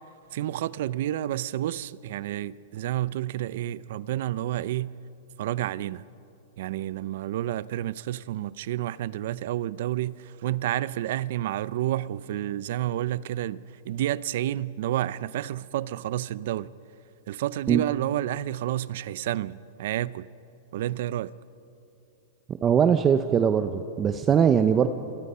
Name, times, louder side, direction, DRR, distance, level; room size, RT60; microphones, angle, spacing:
voice 1, 0.3-4.9 5.4-6.0 6.6-16.7 17.3-20.3 20.7-21.3, right 13 dB, 65° right, 0.6 m, -30 dB
voice 2, 22.6-24.9, right 8 dB, 20° right, 0.8 m, -21 dB
29.0 x 24.0 x 5.6 m
hypercardioid pair, 145°, 0 cm